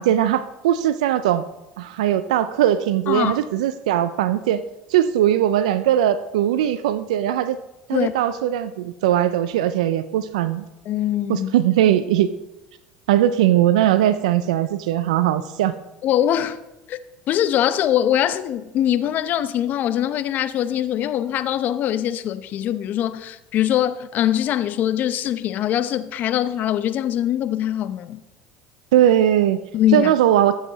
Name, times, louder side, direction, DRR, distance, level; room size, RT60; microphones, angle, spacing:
voice 1, 0.0-1.5 1.8-4.6 4.9-7.6 7.9-10.6 11.3-12.3 13.1-15.7 28.9-29.6 29.9-30.5, right 11 dB, 85° right, 13 dB, 0.4 m, -19 dB
voice 2, 3.1-3.4 7.9-8.1 10.9-11.5 16.0-16.6 16.9-17.0 17.3-28.2 29.7-30.1, left 11 dB, 55° left, 13 dB, 0.7 m, -22 dB
13.0 x 7.3 x 4.0 m, 0.96 s
supercardioid pair, 90°, 4 cm